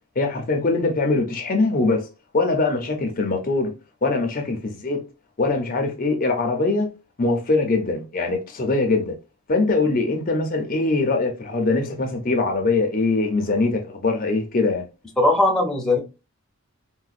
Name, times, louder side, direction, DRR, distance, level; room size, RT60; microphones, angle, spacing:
voice 1, 0.2-2.1 2.3-3.7 4.0-5.0 5.4-6.9 7.2-9.2 9.5-14.8, left 3 dB, 40° left, 0.6 m, -22 dB
voice 2, 15.2-16.0, left 2 dB, 5° left, 0.7 m, -19 dB
4.0 x 2.2 x 2.4 m
head